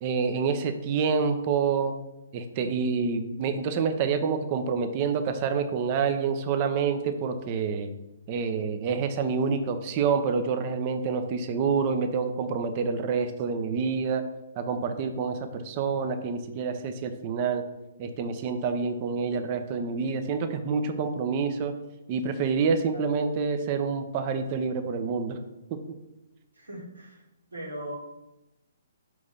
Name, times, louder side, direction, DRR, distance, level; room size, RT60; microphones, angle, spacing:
voice 1, 0.0-2.0 2.3-7.9 8.3-14.2 14.6-17.6 18.0-21.7 22.1-25.4, right 5 dB, 35° right, 8 dB, 0.7 m, -27 dB
voice 2, 26.5-27.2 27.5-27.9, right 1 dB, 90° right, -2 dB, 2.2 m, -39 dB
5.1 x 4.7 x 5.5 m, 0.97 s
figure-of-eight pair, 130°, 0 cm